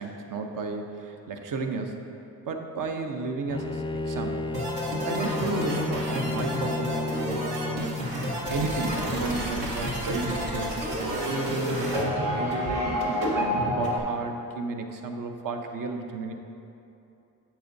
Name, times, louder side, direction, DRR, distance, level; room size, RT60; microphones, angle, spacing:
voice 1, 0.0-2.1 2.5-4.5 5.0-8.0 8.5-13.0 13.3-16.3, right 3 dB, 65° right, 4 dB, 0.8 m, -33 dB
Bowed string instrument, 3.5-8.2, left 3 dB, 15° left, 0.3 m, -32 dB
sound 1, 4.5-14.0, equal, 80° right, 1.4 m, -29 dB
8.9 x 7.1 x 2.7 m, 2.8 s
supercardioid pair, 55°, 36 cm